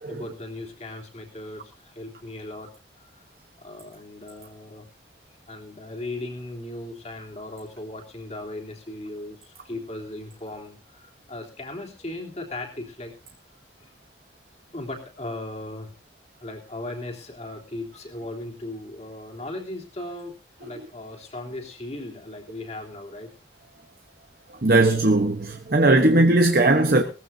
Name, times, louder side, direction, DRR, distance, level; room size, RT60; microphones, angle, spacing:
voice 1, 0.1-2.7 3.0-3.1 3.6-4.9 5.5-13.1 13.8-13.9 14.7-15.9 16.4-23.3, left 2 dB, 35° left, 3.3 m, -37 dB
voice 2, 24.6-27.0, right 2 dB, 55° right, 1.1 m, -18 dB
20.5 x 15.0 x 2.7 m
head